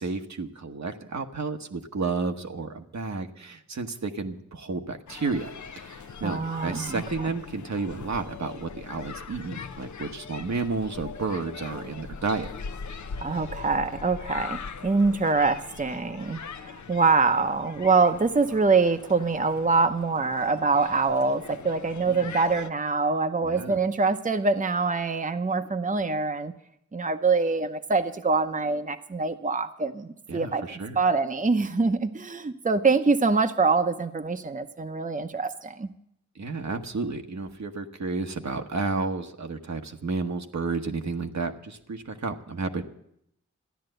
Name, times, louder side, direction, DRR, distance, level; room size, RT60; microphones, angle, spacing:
voice 1, 0.0-5.5 5.8-12.5 22.1-22.3 23.4-23.8 30.3-31.0 36.3-42.8, right 4 dB, 65° right, 5 dB, 1.1 m, -31 dB
sound 1, 5.1-22.7, left 5 dB, 70° left, 0.7 m, -41 dB
voice 2, 6.2-7.3 13.2-26.5 26.9-30.6 31.0-35.9, right 4 dB, 25° right, 8 dB, 0.8 m, -24 dB
13.5 x 10.5 x 7.8 m, 0.76 s
cardioid pair, 50°, 30 cm